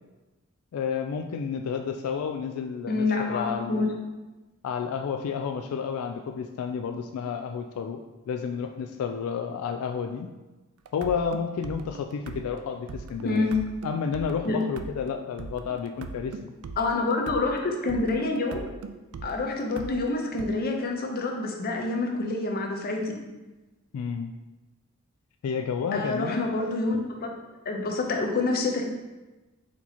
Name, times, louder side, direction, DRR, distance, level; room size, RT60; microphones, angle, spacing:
voice 1, 0.7-3.8 4.6-8.0 8.3-10.3 10.9-13.5 13.8-16.5 23.9-24.3 25.4-26.5, left 6 dB, 85° left, 5 dB, 0.3 m, -31 dB
voice 2, 2.9-3.9 13.2-13.6 14.4-14.6 16.8-18.6 19.2-23.2 25.9-27.4 27.6-28.8, left 3 dB, 45° left, 2 dB, 0.6 m, -27 dB
sound 1, 10.9-20.5, right 4 dB, 90° right, 0.4 m, -41 dB
4.4 x 2.9 x 4.1 m, 1.1 s
head